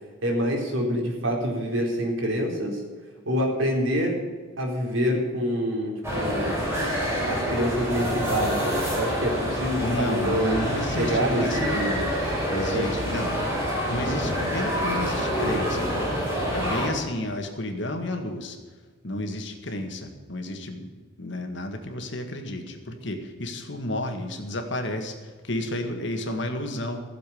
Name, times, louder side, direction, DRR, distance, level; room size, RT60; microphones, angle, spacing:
voice 1, 0.2-2.8 3.3-4.3 4.6-6.5 7.2-10.6 10.9-12.0 12.7-12.9, equal, 70° right, 0 dB, 4.2 m, -26 dB
sound 1, 6.0-16.9, equal, 15° right, 5.5 m, -27 dB
voice 2, 9.8-12.1 12.5-13.5 13.9-16.2 16.5-18.6 19.0-20.9 21.2-27.0, left 1 dB, 60° left, 5 dB, 1.9 m, -32 dB
15.5 x 7.5 x 8.6 m, 1.4 s
head